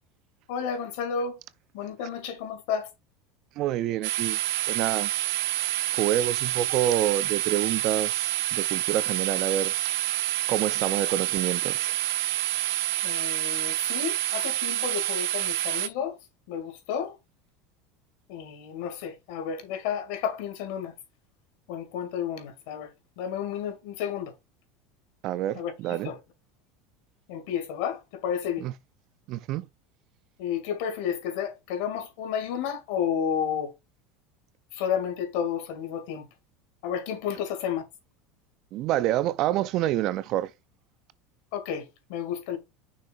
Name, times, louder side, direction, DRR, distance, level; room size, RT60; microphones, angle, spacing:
voice 1, 0.5-1.4 1.7-2.9 13.0-16.2 16.5-17.2 18.3-20.9 21.7-24.3 25.6-26.2 27.3-28.7 30.4-33.7 34.7-36.3 36.8-37.9 41.5-42.6, left 8 dB, 65° left, 2.1 m, -31 dB
voice 2, 3.6-4.4 4.7-5.1 5.9-9.7 10.5-11.9 25.2-26.1 28.6-28.7 29.3-29.7 38.7-40.5, right 13 dB, 45° right, 0.5 m, -27 dB
sound 1, 4.0-15.9, right 14 dB, 70° right, 0.9 m, -28 dB
6.3 x 3.3 x 5.5 m
supercardioid pair, 160°, 0 cm